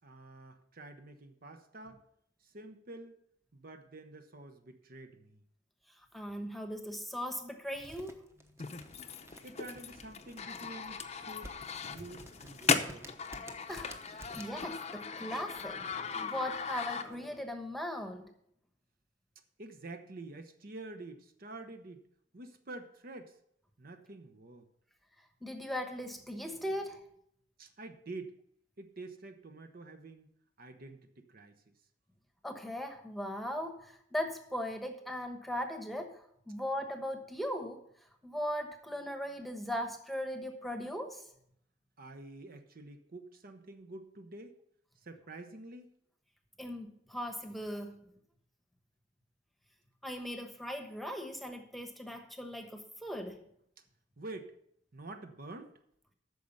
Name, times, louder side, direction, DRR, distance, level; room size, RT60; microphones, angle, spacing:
voice 1, 0.0-2.0 2.4-3.1 3.5-5.4 9.4-13.1 19.6-22.1 22.3-23.4 23.8-24.7 27.6-28.4 28.8-30.3 30.6-31.8 42.0-44.6 45.0-45.9 54.2-54.5 54.9-55.7, right 2 dB, 55° right, 7 dB, 0.9 m, -48 dB
voice 2, 6.1-8.2 13.3-14.0 14.3-18.3 25.4-27.0 32.4-37.8 38.2-41.2 46.6-48.0 50.0-53.4, equal, ahead, 6 dB, 1.1 m, -39 dB
sound 1, 7.7-16.0, right 1 dB, 15° right, 0.9 m, -54 dB
sound 2, 8.6-17.4, left 5 dB, 35° left, 0.7 m, -37 dB
9.3 x 6.4 x 7.1 m, 0.71 s
head